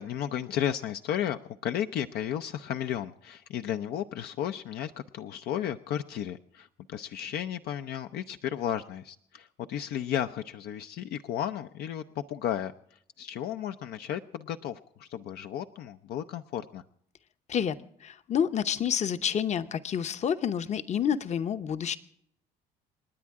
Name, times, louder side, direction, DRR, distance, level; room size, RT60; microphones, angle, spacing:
voice 1, 0.0-16.8, left 10 dB, 70° left, 8 dB, 0.6 m, -34 dB
voice 2, 17.5-22.0, left 8 dB, 40° left, 11 dB, 0.8 m, -29 dB
28.5 x 9.6 x 3.6 m, 0.69 s
cardioid pair, 110°, 17 cm